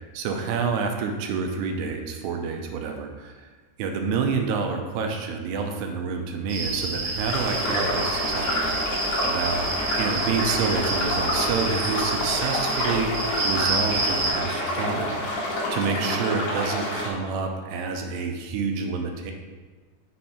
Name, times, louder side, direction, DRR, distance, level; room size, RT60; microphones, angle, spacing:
voice 1, 0.1-3.3 3.8-9.7 10.0-13.1 13.4-15.2 15.5-19.3, right 5 dB, 90° right, 4 dB, 2.7 m, -28 dB
sound 1, 6.5-14.3, right 2 dB, 60° right, 2.8 m, -29 dB
sound 2, 7.3-17.1, left 1 dB, 60° left, 2.4 m, -28 dB
6.6 x 4.4 x 4.8 m, 1.3 s
omnidirectional pair, 4.7 m